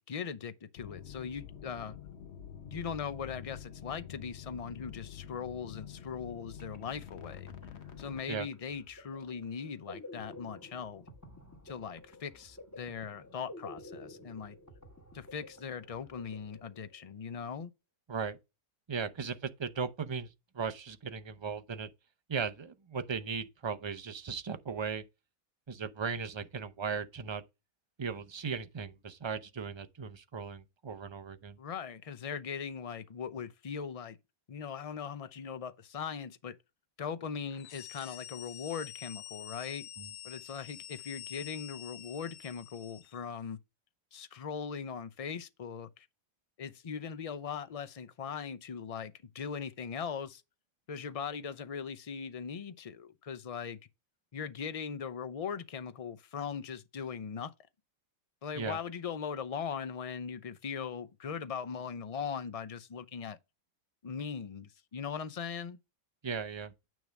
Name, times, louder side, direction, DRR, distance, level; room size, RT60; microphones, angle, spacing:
voice 1, 0.0-2.0 2.6-7.5 8.0-11.0 11.7-14.6 15.1-17.7 31.6-34.2 34.5-36.6 37.0-39.9 40.2-43.6 44.1-46.1 46.6-50.4 50.9-53.8 54.3-57.5 58.4-63.4 64.0-65.8, left 6 dB, 40° left, 0.5 m, -40 dB
sound 1, 0.8-8.2, left 9 dB, 55° left, 1.1 m, -47 dB
sound 2, 6.3-6.4 6.6-17.2, left 2 dB, 15° left, 1.2 m, -52 dB
voice 2, 18.9-21.9 22.3-25.0 25.7-27.4 28.0-31.6 40.0-40.1 58.6-58.8 66.2-66.7, right 5 dB, 35° right, 0.5 m, -37 dB
sound 3, 37.5-43.2, left 12 dB, 90° left, 1.1 m, -47 dB
9.3 x 3.4 x 5.2 m
omnidirectional pair, 1.4 m